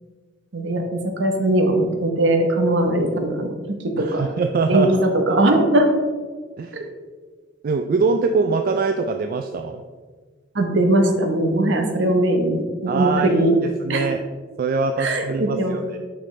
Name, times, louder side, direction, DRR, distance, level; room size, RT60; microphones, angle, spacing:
voice 1, 0.5-3.5 4.0-4.3 4.7-5.9 6.7-6.9 10.5-12.6 12.8-13.6 13.9-14.1 15.0-15.8, right 1 dB, 65° right, 5 dB, 0.9 m, -20 dB
voice 2, 4.0-5.1 6.6-6.8 7.6-9.8 12.9-14.2 14.6-16.0, right 4 dB, 50° right, 6 dB, 0.3 m, -23 dB
6.2 x 6.0 x 3.2 m, 1.5 s
head